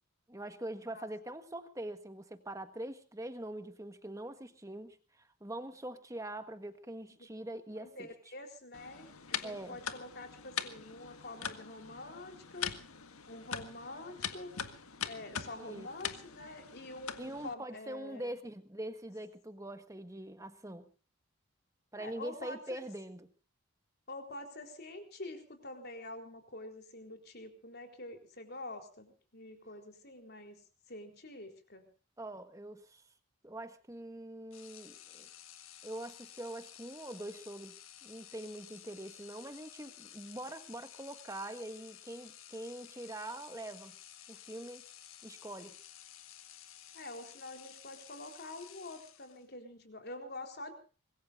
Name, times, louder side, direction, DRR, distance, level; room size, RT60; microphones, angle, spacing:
voice 1, 0.3-8.1 9.4-9.8 15.6-15.9 17.2-20.9 21.9-23.3 32.2-33.0 33.4-35.3 35.8-37.7 38.0-43.9 44.3-44.8 45.2-45.7, right 1 dB, 15° right, 9 dB, 1.4 m, -43 dB
voice 2, 7.2-12.7 13.3-14.6 15.0-18.4 21.9-22.8 24.1-31.9 46.9-50.7, left 2 dB, 50° left, 4 dB, 4.0 m, -47 dB
Flipping Light Switch, 8.7-17.5, left 8 dB, 90° left, 1.7 m, -42 dB
sound 1, 34.5-49.6, left 11 dB, 70° left, 1.8 m, -54 dB
25.0 x 21.0 x 2.6 m, 0.37 s
head